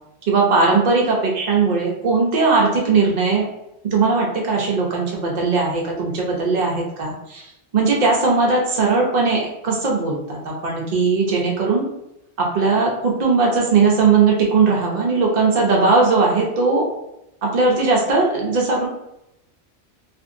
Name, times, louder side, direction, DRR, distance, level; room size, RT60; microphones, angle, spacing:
voice 1, 0.3-3.4 3.9-11.8 12.4-16.9 17.4-18.9, right 4 dB, 50° right, -2 dB, 0.6 m, -19 dB
2.6 x 2.5 x 2.5 m, 0.85 s
omnidirectional pair, 1.1 m